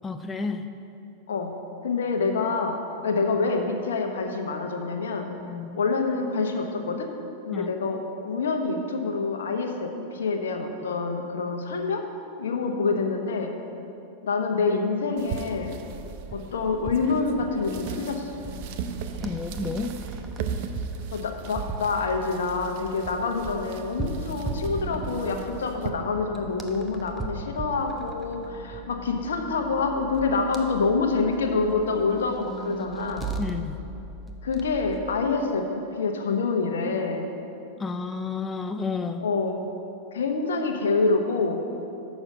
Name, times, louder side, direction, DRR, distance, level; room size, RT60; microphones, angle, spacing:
voice 1, 0.0-0.7 5.4-5.8 7.5-7.7 19.2-20.0 33.4-33.8 37.8-39.3, left 4 dB, 20° left, 7 dB, 0.4 m, -31 dB
voice 2, 1.8-5.4 5.8-7.1 7.5-12.0 12.4-13.6 14.2-15.8 16.3-18.4 21.1-33.3 34.4-37.3 39.2-39.6 40.1-41.7, left 4 dB, 80° left, 4 dB, 0.9 m, -27 dB
sound 1, 15.2-25.9, right 6 dB, 60° right, 0.6 m, -38 dB
sound 2, 15.9-35.2, right 3 dB, 15° right, 0.8 m, -38 dB
6.5 x 6.2 x 7.4 m, 2.8 s
hypercardioid pair, 100°, 0 cm